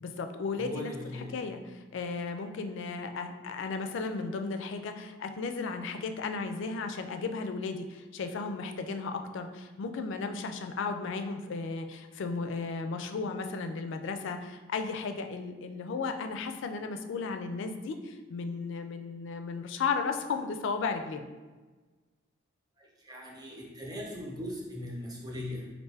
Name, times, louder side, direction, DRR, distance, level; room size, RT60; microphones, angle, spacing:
voice 1, 0.0-0.9 1.3-21.2, left 4 dB, 60° left, 7 dB, 0.3 m, -35 dB
voice 2, 0.5-1.3 22.8-25.7, left 1 dB, 20° right, -2 dB, 0.7 m, -39 dB
4.4 x 2.5 x 3.3 m, 1.3 s
head